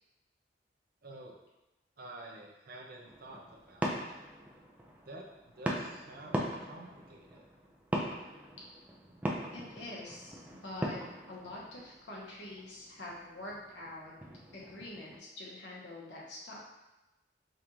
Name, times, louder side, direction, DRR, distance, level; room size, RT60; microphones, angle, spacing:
voice 1, 1.0-1.4 2.0-4.3 5.1-5.3 5.6-7.4, right 2 dB, 50° right, 0 dB, 0.6 m, -49 dB
sound 1, 3.0-15.2, equal, 10° right, 0.4 m, -40 dB
voice 2, 9.5-11.0 11.3-14.1 14.5-16.6, left 1 dB, 75° left, -4 dB, 1.0 m, -45 dB
5.1 x 2.5 x 3.0 m, 1.0 s
head